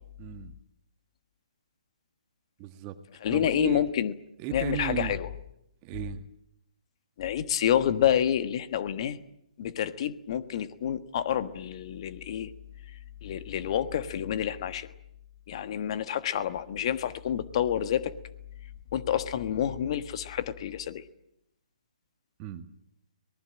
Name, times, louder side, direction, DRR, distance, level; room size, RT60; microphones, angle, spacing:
voice 1, 0.2-0.5 2.6-3.0 3.3-3.9 4.4-5.2 5.8-6.2 22.4-22.7, right 12 dB, 25° right, 9 dB, 1.6 m, -35 dB
voice 2, 3.2-4.1 4.5-5.3 7.2-9.2 9.6-12.5 12.9-14.9 15.5-18.1 18.9-21.0, left 10 dB, 45° left, 12 dB, 1.4 m, -28 dB
25.5 x 19.5 x 8.9 m, 0.79 s
figure-of-eight pair, 140°, 4 cm